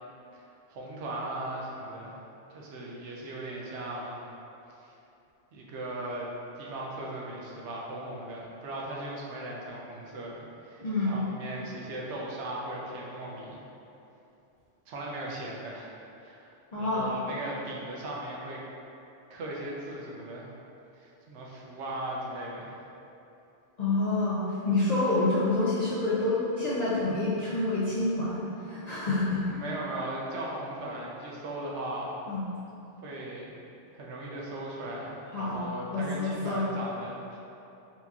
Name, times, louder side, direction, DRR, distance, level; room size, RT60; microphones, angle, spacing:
voice 1, 0.7-2.2 2.5-4.3 4.8-4.9 5.5-6.3 6.5-13.7 14.9-15.9 16.2-16.5 16.8-18.6 19.3-20.5 21.0-22.7 25.2-25.3 29.5-32.1 33.0-33.5 33.9-37.4, right 1 dB, 70° right, -3 dB, 0.9 m, -38 dB
voice 2, 10.8-11.2 16.7-17.1 23.8-29.6 32.3-32.4 35.3-36.7, left 2 dB, 55° left, -9 dB, 0.4 m, -28 dB
4.3 x 2.8 x 2.3 m, 2.8 s
omnidirectional pair, 1.2 m